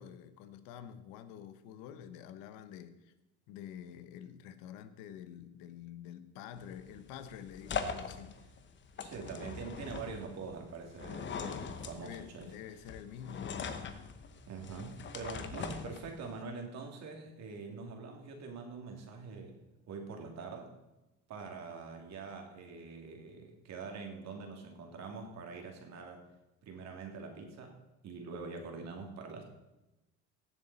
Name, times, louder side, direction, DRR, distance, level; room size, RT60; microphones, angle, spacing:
voice 1, 0.0-3.1 3.5-8.4 12.0-13.6, left 9 dB, 85° left, 11 dB, 1.1 m, -48 dB
sound 1, 6.6-16.4, left 6 dB, 35° left, 0.9 m, -42 dB
voice 2, 9.0-12.5 14.5-19.6 19.9-20.7 21.3-26.2 26.6-27.8 28.0-29.4, right 4 dB, 50° right, 2 dB, 2.6 m, -44 dB
16.5 x 7.3 x 4.1 m, 0.99 s
cardioid pair, 130°, 33 cm